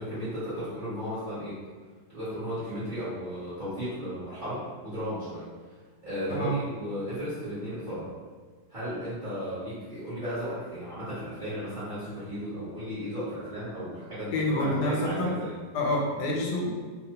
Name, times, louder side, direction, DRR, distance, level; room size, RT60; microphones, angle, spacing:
voice 1, 0.0-1.6 2.1-5.4 6.0-8.1 8.7-15.6, equal, 35° right, -12 dB, 0.9 m, -35 dB
voice 2, 14.3-15.3 15.7-16.7, left 1 dB, 85° left, -1 dB, 1.2 m, -27 dB
2.8 x 2.0 x 2.7 m, 1.4 s
omnidirectional pair, 1.7 m